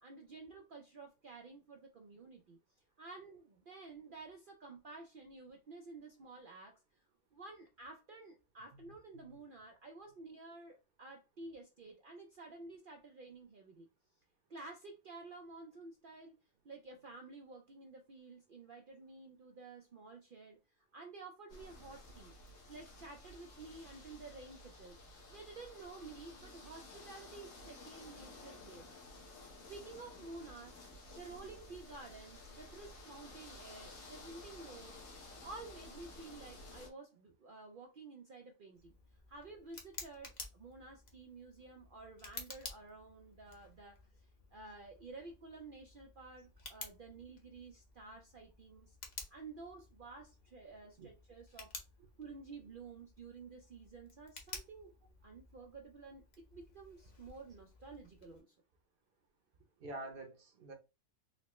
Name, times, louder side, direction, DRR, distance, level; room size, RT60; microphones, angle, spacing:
voice 1, 0.0-2.6 3.0-6.8 7.3-13.9 14.5-16.4 16.6-22.3 22.7-25.0 25.3-28.9 29.7-35.0 35.4-39.0 39.3-49.0 49.3-51.7 52.2-54.9 55.2-58.5, right 3 dB, 75° right, 0.4 m, -52 dB
voice 2, 8.7-9.4 51.0-51.1 59.8-60.7, right 2 dB, 50° right, 0.8 m, -48 dB
sound 1, 21.5-36.9, left 2 dB, 65° left, 1.4 m, -54 dB
Tick, 38.7-58.4, left 3 dB, 40° left, 0.7 m, -53 dB
4.2 x 2.1 x 2.9 m
omnidirectional pair, 1.5 m